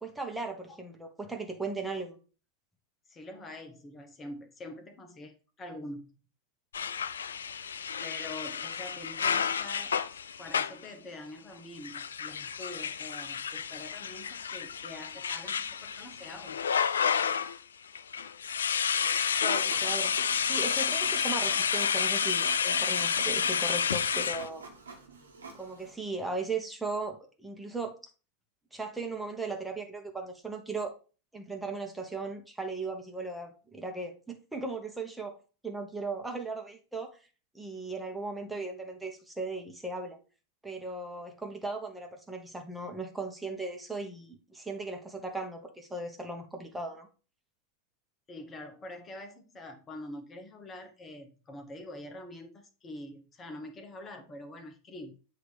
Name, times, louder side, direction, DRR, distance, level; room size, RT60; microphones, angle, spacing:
voice 1, 0.0-2.2 19.4-24.6 25.6-27.9 28.7-30.9 31.3-35.4 35.6-37.1 37.5-40.2 40.6-47.1, right 3 dB, 5° right, 3 dB, 1.2 m, -37 dB
voice 2, 3.1-6.2 8.0-10.0 10.4-16.6 48.3-55.1, left 1 dB, 25° left, 5 dB, 1.1 m, -45 dB
sound 1, 6.7-10.9 11.8-17.6 17.9-24.5, left 7 dB, 75° left, 0.3 m, -30 dB
Printer, 19.7-25.9, right 3 dB, 85° right, 1.3 m, -47 dB
7.8 x 2.8 x 4.8 m, 0.35 s
figure-of-eight pair, 90°, 0 cm